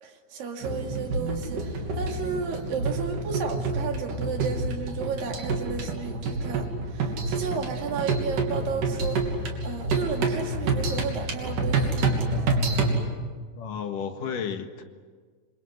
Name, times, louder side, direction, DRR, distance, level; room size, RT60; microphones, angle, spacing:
voice 1, 0.0-12.4, right 5 dB, 85° right, 3 dB, 4.1 m, -33 dB
sound 1, 0.6-13.0, right 3 dB, 70° right, 4.6 m, -28 dB
voice 2, 13.6-14.8, left 7 dB, 70° left, 6 dB, 3.2 m, -32 dB
27.5 x 25.5 x 7.9 m, 1.5 s
omnidirectional pair, 3.9 m